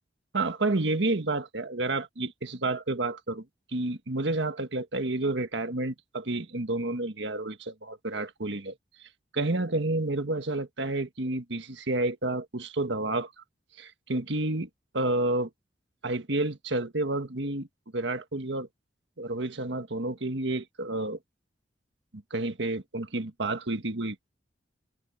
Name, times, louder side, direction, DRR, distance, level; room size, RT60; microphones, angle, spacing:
voice 1, 0.3-3.4 3.7-8.7 9.3-13.3 13.8-15.5 16.0-17.7 17.9-18.7 19.2-21.2 22.1-24.3, right 2 dB, 70° right, 1.6 m, -30 dB
head